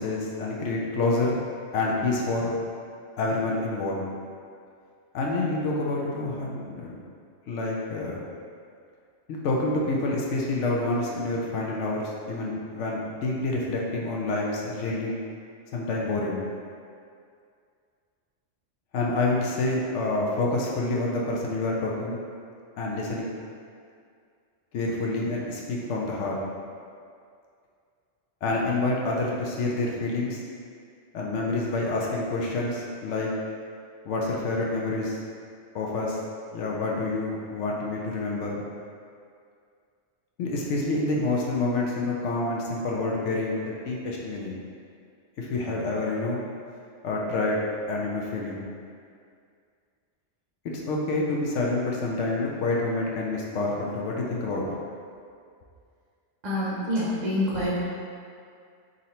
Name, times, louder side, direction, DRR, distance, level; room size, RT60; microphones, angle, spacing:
voice 1, 0.0-1.4 1.7-2.5 3.2-4.0 5.1-7.0 7.5-8.2 9.3-15.2 15.7-16.4 18.9-22.2 22.8-23.3 24.7-26.4 28.4-30.4 31.1-33.3 34.0-35.2 35.7-36.2 36.5-38.6 40.4-44.6 45.4-46.4 47.0-48.6 50.6-54.7, left 2 dB, 85° left, -3 dB, 0.9 m, -28 dB
voice 2, 56.4-57.7, left 1 dB, 40° right, -8 dB, 0.8 m, -26 dB
3.8 x 2.8 x 4.2 m, 2.3 s
omnidirectional pair, 1.2 m